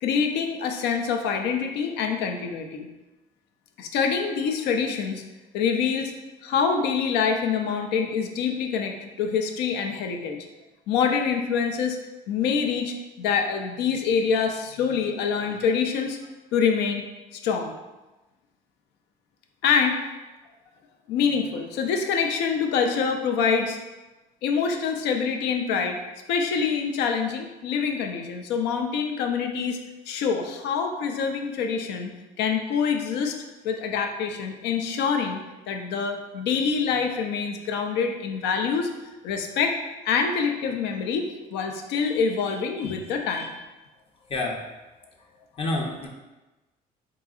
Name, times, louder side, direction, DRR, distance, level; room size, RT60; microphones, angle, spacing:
voice 1, 0.0-2.9 3.8-5.2 5.5-6.1 6.4-10.4 10.9-12.0 12.3-16.2 16.5-17.0 17.3-17.7 19.6-20.0 21.1-23.8 24.4-26.0 26.3-29.8 30.1-32.1 32.4-33.4 33.6-35.4 35.7-38.9 39.2-39.7 40.0-43.6, left 6 dB, 90° left, 4 dB, 0.5 m, -25 dB
voice 2, 44.3-44.6 45.6-46.1, left 2 dB, 35° left, 0 dB, 0.6 m, -28 dB
3.8 x 3.7 x 2.4 m, 1.1 s
cardioid pair, 110°, 17 cm